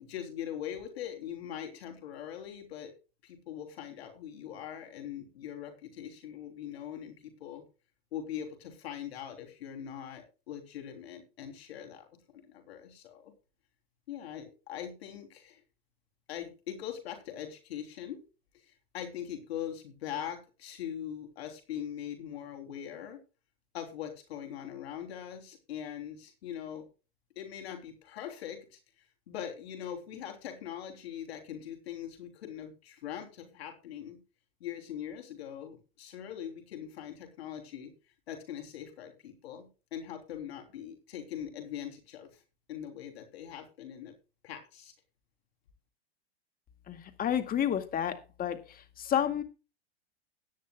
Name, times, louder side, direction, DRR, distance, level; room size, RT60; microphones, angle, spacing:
voice 1, 0.0-2.9 3.2-7.6 8.1-12.1 12.3-13.3 14.1-15.6 16.3-18.2 18.9-23.2 23.7-26.9 27.3-28.8 29.3-34.2 34.6-37.9 38.3-42.4 42.7-44.1 44.4-44.9, left 10 dB, 75° left, 5 dB, 3.3 m, -41 dB
voice 2, 46.9-49.4, left 9 dB, 25° left, 8 dB, 2.1 m, -31 dB
17.0 x 10.5 x 2.3 m, 0.31 s
hypercardioid pair, 115°, 32 cm